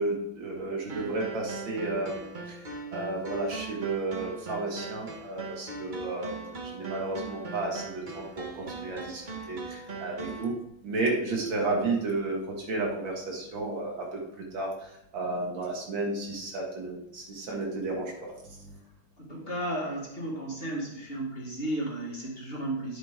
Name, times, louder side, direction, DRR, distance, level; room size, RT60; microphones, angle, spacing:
voice 1, 0.0-2.6 2.9-9.2 9.5-10.5 10.8-12.4 12.7-14.1 14.5-14.7 15.1-18.1 18.4-18.6, right 2 dB, 75° right, -1 dB, 2.6 m, -32 dB
sound 1, 0.9-10.5, right 3 dB, 30° right, 1.1 m, -40 dB
voice 2, 19.2-23.0, right 1 dB, 30° left, -3 dB, 2.2 m, -34 dB
10.5 x 7.3 x 3.8 m, 0.81 s
omnidirectional pair, 2.1 m